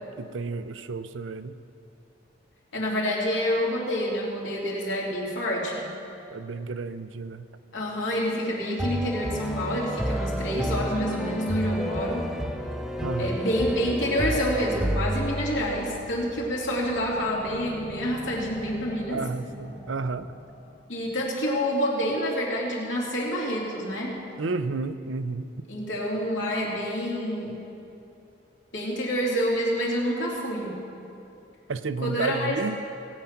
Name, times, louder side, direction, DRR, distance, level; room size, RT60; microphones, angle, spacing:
voice 1, 0.2-1.6 6.3-7.4 13.0-13.4 19.1-20.3 24.4-25.5 31.7-32.8, right 3 dB, 85° right, 12 dB, 0.6 m, -31 dB
voice 2, 2.7-5.9 7.7-12.3 13.2-19.2 20.9-24.2 25.7-27.6 28.7-30.8 32.0-32.6, equal, 80° left, -3 dB, 3.1 m, -28 dB
sound 1, 8.8-16.0, equal, ahead, 0.7 m, -30 dB
sound 2, 15.4-20.8, equal, 30° left, 1.5 m, -45 dB
18.0 x 8.6 x 5.8 m, 2.7 s
head